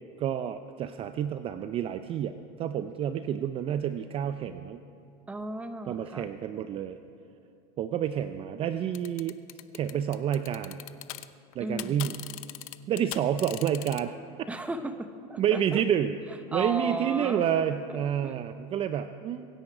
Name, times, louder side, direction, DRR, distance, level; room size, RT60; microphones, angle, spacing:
voice 1, 0.2-4.8 5.9-7.0 7.8-9.4 9.7-10.8 11.5-12.2 12.9-14.1 15.4-19.5, right 9 dB, 35° right, 10 dB, 0.5 m, -29 dB
voice 2, 5.3-6.3 11.6-12.1 14.5-15.8 16.5-17.5 18.2-18.4, right 2 dB, 10° right, 8 dB, 0.9 m, -35 dB
sound 1, 8.9-11.3 11.5-14.0, left 16 dB, 85° left, 0.6 m, -39 dB
23.5 x 10.5 x 4.9 m, 2.7 s
supercardioid pair, 125°, 17 cm